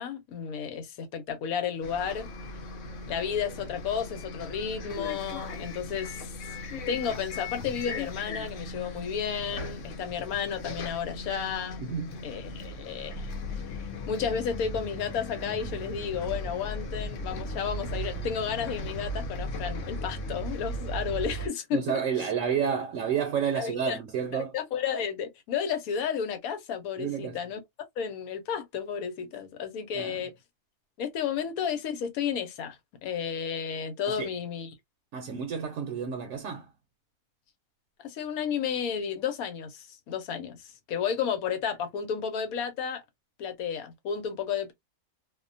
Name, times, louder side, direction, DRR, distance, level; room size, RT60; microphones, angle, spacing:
voice 1, 0.0-2.3 3.1-6.3 6.9-11.8 12.2-13.3 14.1-22.0 23.5-24.0 24.3-27.6 28.0-30.3 31.0-34.7 38.0-43.0 43.4-44.7, left 7 dB, 80° left, 1.2 m, -32 dB
Bus, 1.8-21.5, left 1 dB, 65° left, 0.9 m, -37 dB
voice 2, 11.8-12.2 21.7-24.5 27.0-27.4 29.9-30.2 34.1-34.3 35.1-36.7, right 7 dB, 70° right, 0.9 m, -30 dB
2.6 x 2.2 x 2.5 m
omnidirectional pair, 1.5 m